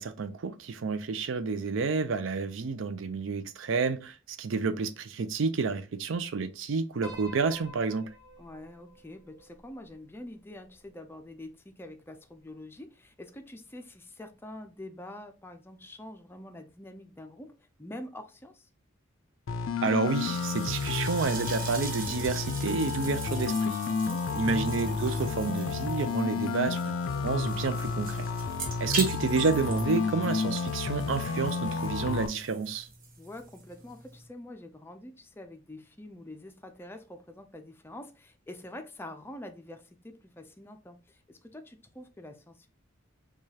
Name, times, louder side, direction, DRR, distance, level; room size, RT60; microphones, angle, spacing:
voice 1, 0.0-8.1 19.8-23.8 24.4-26.8 27.1-28.3 28.8-32.9, right 4 dB, 70° right, 0.5 m, -29 dB
Piano, 7.0-11.4, equal, 20° right, 0.7 m, -50 dB
voice 2, 8.4-18.7 24.1-24.5 26.3-26.6 33.2-42.7, left 1 dB, 10° left, 0.4 m, -46 dB
sound 1, 19.5-32.3, left 5 dB, 75° left, 0.4 m, -31 dB
sound 2, 20.0-34.3, right 3 dB, 45° right, 1.0 m, -42 dB
4.7 x 2.3 x 2.8 m
head